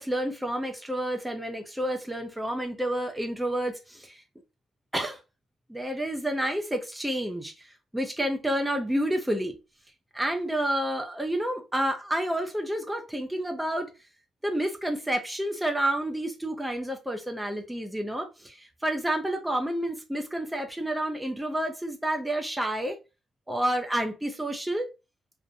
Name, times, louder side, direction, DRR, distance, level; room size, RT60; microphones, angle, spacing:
voice 1, 0.0-4.2 4.9-5.2 5.7-9.6 10.1-13.9 14.4-23.0 23.5-24.9, right 1 dB, 5° right, 0.4 m, -29 dB
2.5 x 2.0 x 2.5 m
cardioid pair, 90°, 0 cm